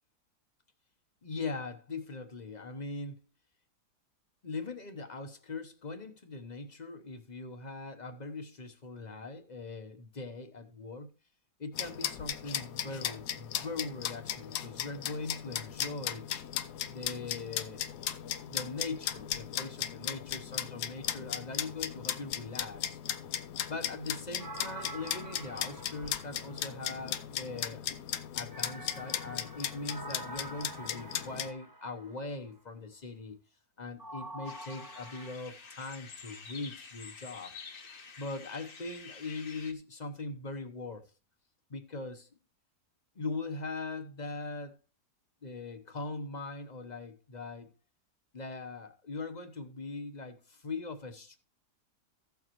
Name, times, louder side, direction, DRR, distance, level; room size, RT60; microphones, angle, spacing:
voice 1, 1.2-3.2 4.4-11.1 11.6-16.3 16.9-17.9 18.5-23.0 23.7-27.9 28.3-33.4 33.8-37.6 38.2-41.1 41.7-42.3 43.1-44.8 45.4-47.7 48.3-51.4, left 3 dB, 30° left, 0.9 m, -41 dB
sound 1, 11.7-31.5, left 10 dB, 75° left, 1.2 m, -37 dB
sound 2, 24.4-27.2 28.5-32.3 34.0-35.3, right 2 dB, 15° right, 0.8 m, -46 dB
sound 3, 34.4-39.7, left 5 dB, 55° left, 1.5 m, -49 dB
15.0 x 7.1 x 3.0 m
omnidirectional pair, 1.8 m